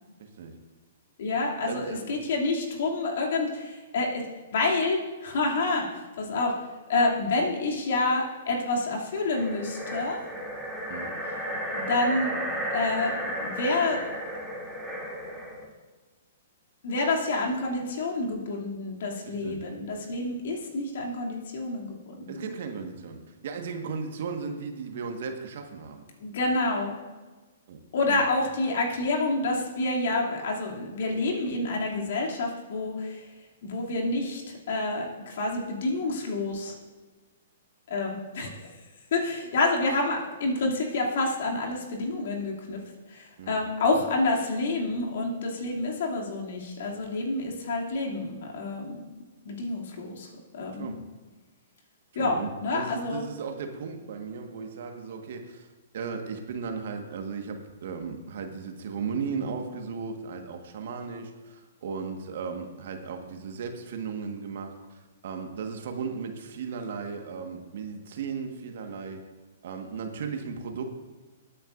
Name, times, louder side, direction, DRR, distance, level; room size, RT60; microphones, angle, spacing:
voice 1, 0.2-0.5 1.6-2.1 10.9-11.1 19.2-19.6 22.3-26.0 27.7-27.8 28.1-28.2 43.4-43.6 50.7-51.0 52.1-55.7 55.9-69.3 69.6-71.0, right 5 dB, 60° right, 5 dB, 1.5 m, -36 dB
voice 2, 1.2-4.2 4.5-6.5 6.9-10.2 11.7-12.3 12.7-14.0 16.8-22.5 26.2-27.0 27.9-33.3 33.6-36.8 37.9-38.7 39.1-42.8 43.1-49.0 49.4-51.0 52.1-53.2, left 2 dB, 60° left, -1 dB, 2.6 m, -28 dB
sound 1, 9.2-15.7, equal, 5° left, 2.7 m, -34 dB
20.5 x 8.7 x 2.6 m, 1.3 s
hypercardioid pair, 120°, 0 cm